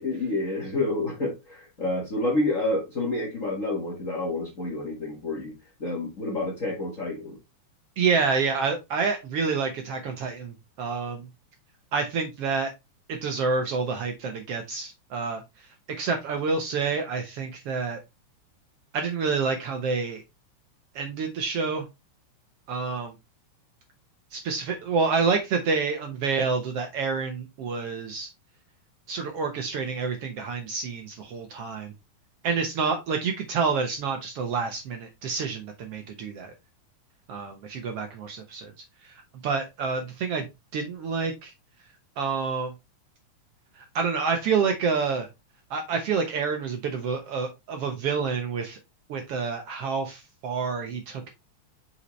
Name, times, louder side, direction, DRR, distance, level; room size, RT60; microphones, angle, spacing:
voice 1, 0.0-5.5 5.8-7.4, left 2 dB, 35° left, 1.5 m, -29 dB
voice 2, 8.0-11.3 11.9-12.7 13.1-15.4 16.0-18.0 18.9-20.2 20.9-21.9 22.7-23.1 24.3-28.3 29.1-31.9 32.4-36.5 37.3-38.7 39.0-39.1 39.4-40.4 40.7-41.5 42.2-42.7 43.9-45.3 45.7-48.8 49.1-51.3, right 5 dB, 65° right, 1.7 m, -28 dB
5.7 x 5.6 x 3.1 m
omnidirectional pair, 3.4 m